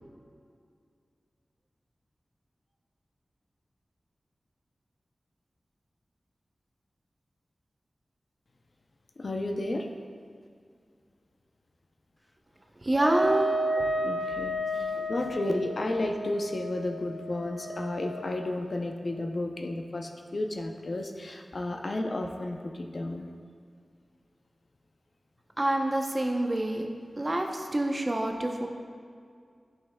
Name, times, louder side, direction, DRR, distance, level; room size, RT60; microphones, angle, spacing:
voice 1, 9.2-9.9 14.0-23.3, left 1 dB, 60° left, 3 dB, 0.5 m, -32 dB
voice 2, 12.8-13.9 14.7-15.3 25.6-26.9 27.2-28.7, right 1 dB, 35° right, 3 dB, 0.7 m, -28 dB
Wind instrument woodwind instrument, 13.0-18.6, right 1 dB, 10° left, 0.4 m, -32 dB
10.5 x 5.6 x 2.2 m, 2.1 s
wide cardioid pair, 60°, 0 cm